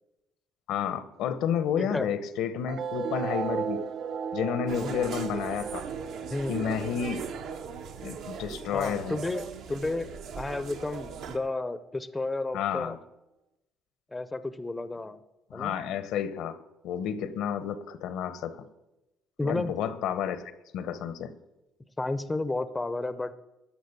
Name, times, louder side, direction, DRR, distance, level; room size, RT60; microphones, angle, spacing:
voice 1, 0.7-3.8 4.3-5.8 6.5-7.2 8.0-9.2 12.5-13.0 15.5-16.6 16.8-18.6 19.4-20.4 20.7-21.3, left 8 dB, 75° left, 14 dB, 0.9 m, -31 dB
voice 2, 1.8-2.1 4.8-5.0 6.3-6.7 8.7-13.0 14.1-15.2 15.5-15.8 19.4-19.7 22.0-23.3, left 2 dB, 15° left, 14 dB, 0.6 m, -32 dB
sound 1, 2.7-9.7, right 7 dB, 50° right, 0.5 m, -36 dB
sound 2, 4.7-11.4, right 6 dB, 65° right, 1.2 m, -39 dB
12.5 x 6.3 x 8.2 m, 0.96 s
cardioid pair, 105°, 0 cm